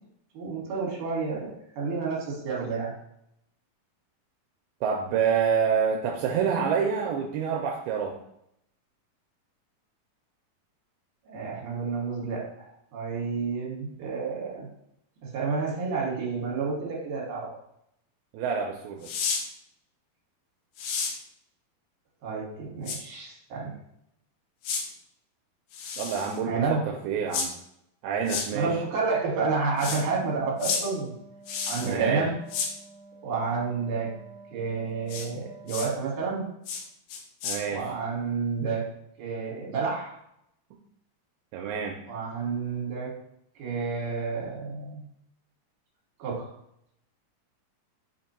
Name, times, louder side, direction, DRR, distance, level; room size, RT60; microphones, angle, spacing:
voice 1, 0.3-1.5 1.8-2.9 11.3-14.7 15.2-17.5 22.2-23.7 26.5-26.8 28.5-31.1 31.7-32.3 33.2-34.1 34.5-36.5 37.7-38.9 39.2-40.1 42.1-43.1 43.6-45.0 46.2-46.5, right 4 dB, 65° right, -3 dB, 2.6 m, -30 dB
voice 2, 4.8-8.1 18.3-19.1 26.0-26.8 27.0-27.5 28.0-28.8 31.8-32.2 37.4-37.8 41.5-42.0, right 6 dB, 85° right, 0 dB, 2.4 m, -27 dB
sound 1, 19.0-19.4 20.8-21.1 22.9-23.0 24.6-24.8 25.7-26.4 27.3-27.5 28.3-28.5 29.8-30.0 30.6-30.8 31.5-31.9 32.5-32.7 35.1-35.3 35.7-35.9 36.7-36.8 37.1-37.6, left 5 dB, 80° left, 1.9 m, -31 dB
Wind instrument woodwind instrument, 29.7-36.2, right 3 dB, 50° left, 1.6 m, -48 dB
5.8 x 2.2 x 4.1 m, 0.76 s
omnidirectional pair, 4.3 m